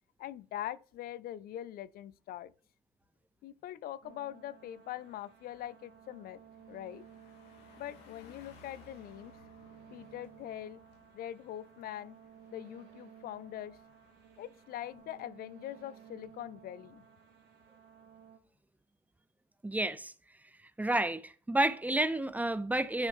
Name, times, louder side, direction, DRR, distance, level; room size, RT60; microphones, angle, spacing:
voice 1, 0.2-2.5 3.4-6.4 6.7-7.0 7.8-9.4 9.9-10.8 11.1-12.2 12.5-13.8 14.4-17.0, left 12 dB, 60° left, 0.4 m, -43 dB
Car passing by, 3.7-3.9 4.3-15.3, left 4 dB, 85° left, 2.4 m, -61 dB
sound 1, 4.0-18.4, right 8 dB, 80° right, 2.3 m, -57 dB
voice 2, 19.6-20.1 20.8-23.1, right 1 dB, 10° right, 0.6 m, -30 dB
10.5 x 6.2 x 3.6 m
cardioid pair, 110°, 17 cm